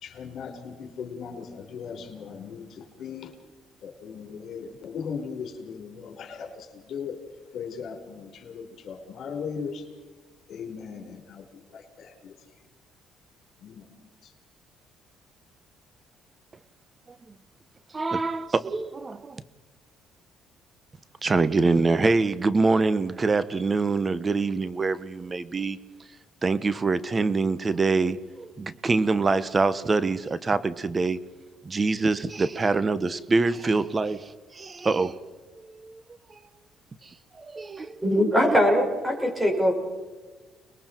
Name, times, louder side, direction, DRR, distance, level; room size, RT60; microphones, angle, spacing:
voice 1, 0.0-3.3 3.8-7.2 7.5-9.8 10.5-12.3 13.6-13.8, left 6 dB, 60° left, 4.3 m, -38 dB
voice 2, 17.9-19.4 21.2-25.8 26.4-31.2 31.6-36.0 36.3-36.4 37.4-38.0, right 3 dB, 25° right, 1.1 m, -25 dB
voice 3, 38.0-39.7, equal, 10° right, 6.1 m, -21 dB
30.0 x 21.5 x 4.6 m
cardioid pair, 95°, 0 cm